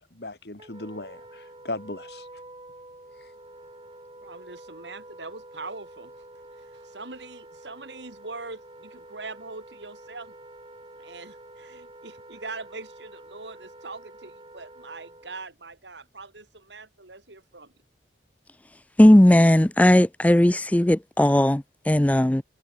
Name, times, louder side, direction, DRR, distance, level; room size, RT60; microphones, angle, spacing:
voice 1, 0.1-2.3, left 2 dB, 65° left, 2.3 m, -37 dB
Wind instrument woodwind instrument, 0.6-15.5, right 1 dB, 30° right, 4.8 m, -47 dB
voice 2, 4.2-6.1 6.6-10.4 11.0-17.7, right 3 dB, 90° right, 4.7 m, -42 dB
voice 3, 19.0-22.4, left 1 dB, 10° left, 0.4 m, -17 dB
head